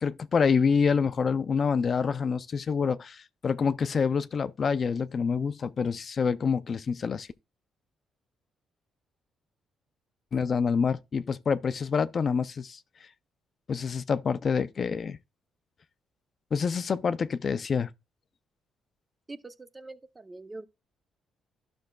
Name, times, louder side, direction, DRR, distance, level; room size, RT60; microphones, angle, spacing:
voice 1, 0.0-7.3 10.3-12.8 13.7-15.2 16.5-17.9, left 6 dB, 45° left, 0.4 m, -27 dB
voice 2, 19.3-20.7, right 2 dB, 20° right, 0.7 m, -44 dB
11.5 x 6.1 x 2.3 m
cardioid pair, 90°, 0 cm